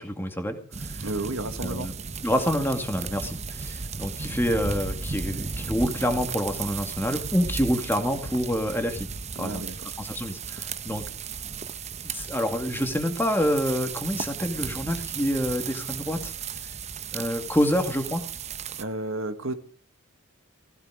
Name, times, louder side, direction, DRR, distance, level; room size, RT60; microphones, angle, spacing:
voice 1, 0.0-1.0 1.6-1.9 2.2-9.1 9.4-9.6 10.0-11.0 12.0-16.3 17.1-18.2, equal, 10° left, 5 dB, 2.2 m, -27 dB
sound 1, 0.7-18.8, right 5 dB, 30° right, 0.8 m, -35 dB
voice 2, 1.0-1.9 9.4-9.9 18.8-19.5, right 2 dB, 65° right, 9 dB, 1.7 m, -32 dB
16.5 x 16.0 x 5.0 m, 0.40 s
head